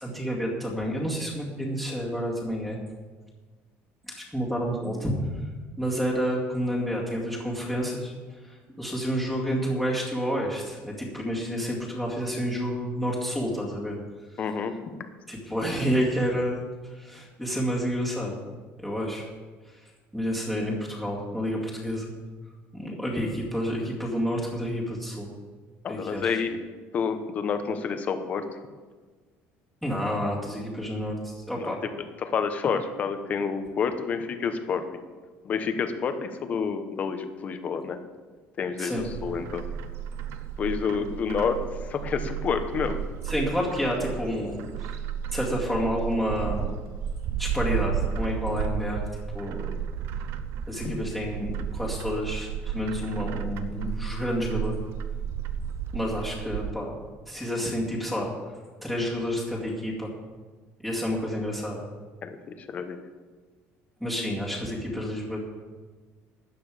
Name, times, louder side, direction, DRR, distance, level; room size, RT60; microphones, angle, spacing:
voice 1, 0.0-2.8 4.1-5.2 5.8-8.1 8.4-14.0 15.3-16.6 17.0-18.4 18.8-19.3 20.1-22.1 22.7-25.3 25.9-26.4 29.8-31.8 38.8-39.0 43.3-44.9 45.3-46.8 47.4-49.0 49.3-49.6 50.7-54.8 55.9-56.9 57.3-58.3 58.8-60.1 60.8-61.8 64.0-65.4, equal, ahead, -4 dB, 2.2 m, -29 dB
voice 2, 14.4-14.7 25.8-26.6 26.9-28.6 31.6-31.9 32.2-35.0 35.4-38.0 38.6-39.6 40.6-41.6 41.9-43.0 50.8-50.9 62.2-63.0, left 6 dB, 30° left, 8 dB, 1.0 m, -29 dB
Bird, 39.0-56.7, right 8 dB, 55° right, 0.6 m, -33 dB
13.0 x 9.4 x 5.0 m, 1.4 s
cardioid pair, 165°, 5 cm